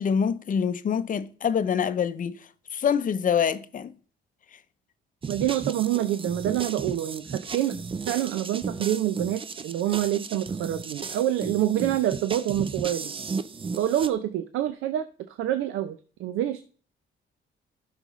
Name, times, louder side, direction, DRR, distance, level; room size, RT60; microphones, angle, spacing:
voice 1, 0.0-2.4 2.7-3.9, left 7 dB, 45° left, 0.5 m, -25 dB
sound 1, 5.2-14.1, right 5 dB, 25° right, 0.5 m, -35 dB
voice 2, 5.3-13.1 13.8-16.6, right 12 dB, 85° right, 0.5 m, -27 dB
12.5 x 5.7 x 3.1 m
cardioid pair, 90°, 20 cm